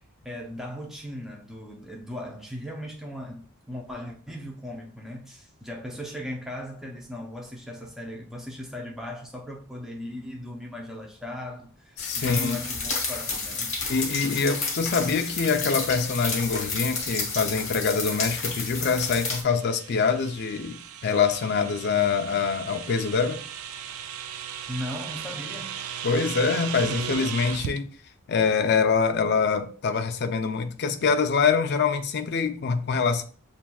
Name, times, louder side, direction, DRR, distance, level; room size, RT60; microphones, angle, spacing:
voice 1, 0.2-13.7 24.7-25.8, left 1 dB, ahead, 0.6 m, -38 dB
voice 2, 12.0-12.6 13.9-23.4 26.0-27.9 28.3-33.2, left 5 dB, 50° left, 0.4 m, -25 dB
sound 1, 12.0-19.4, left 4 dB, 30° left, 0.9 m, -31 dB
sound 2, 19.0-27.8, right 9 dB, 80° right, 0.4 m, -37 dB
7.1 x 2.5 x 2.3 m
head